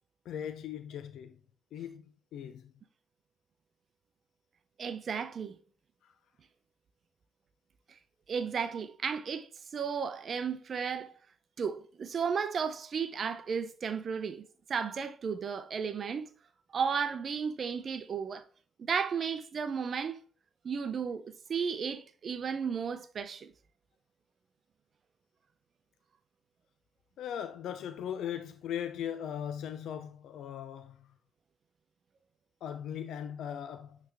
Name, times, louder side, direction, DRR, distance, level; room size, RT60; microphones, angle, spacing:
voice 1, 0.3-1.4 1.7-2.0 2.3-2.7 6.0-6.1 27.2-31.1 32.6-34.0, left 9 dB, 80° left, 0.4 m, -39 dB
voice 2, 4.8-5.6 7.9-8.0 8.3-11.1 11.6-14.4 14.7-16.3 16.7-18.4 18.8-20.2 20.6-21.2 21.5-23.5, right 6 dB, 55° right, 0.6 m, -34 dB
9.1 x 3.4 x 3.4 m
cardioid pair, 75°, 0 cm